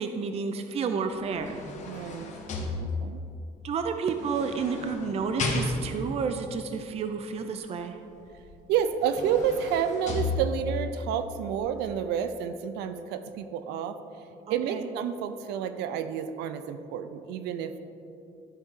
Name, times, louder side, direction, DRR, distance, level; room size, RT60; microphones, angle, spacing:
voice 1, 0.0-1.6 3.6-8.0 14.5-14.9, right 5 dB, 40° right, 7 dB, 0.5 m, -31 dB
sound 1, 1.1-3.3 4.2-6.2 8.4-8.5 8.9-10.9 11.5-11.6, left 2 dB, 45° left, 1.2 m, -33 dB
voice 2, 1.9-2.3 3.0-3.2 8.7-14.0 14.5-17.8, right 8 dB, 90° right, 10 dB, 0.5 m, -29 dB
12.5 x 4.4 x 3.8 m, 2.7 s
cardioid pair, 110°, 17 cm